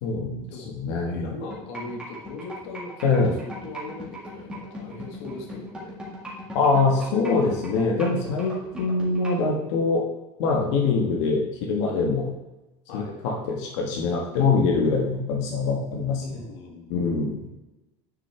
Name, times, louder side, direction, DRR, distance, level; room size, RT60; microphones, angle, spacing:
voice 1, 0.0-0.5 0.8-1.3 3.0-3.3 6.5-10.0 10.4-12.3 12.9-16.4 16.9-17.4, left 4 dB, 85° left, -1 dB, 1.6 m, -24 dB
voice 2, 1.1-6.0 12.9-13.2 16.2-16.9, left 3 dB, 70° left, 1 dB, 1.7 m, -39 dB
sound 1, 1.5-9.4, right 1 dB, 5° right, 1.8 m, -38 dB
9.7 x 5.8 x 3.4 m, 1.0 s
cardioid pair, 180°, 15 cm